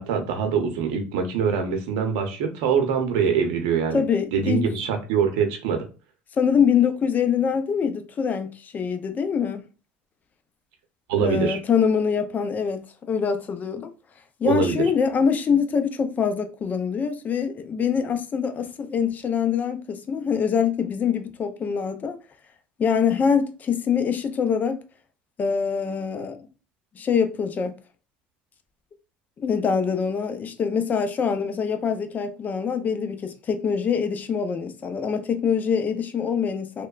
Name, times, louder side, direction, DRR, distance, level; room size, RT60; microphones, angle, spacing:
voice 1, 0.0-4.0 4.3-5.8 11.1-11.6 14.4-14.8, right 6 dB, 80° right, 0.7 m, -23 dB
voice 2, 3.9-4.6 6.4-9.6 11.2-13.9 14.4-22.2 22.8-24.8 25.4-26.5 27.0-27.7 29.4-36.9, left 6 dB, 35° left, 0.5 m, -24 dB
2.9 x 2.1 x 2.4 m
supercardioid pair, 95°, 5 cm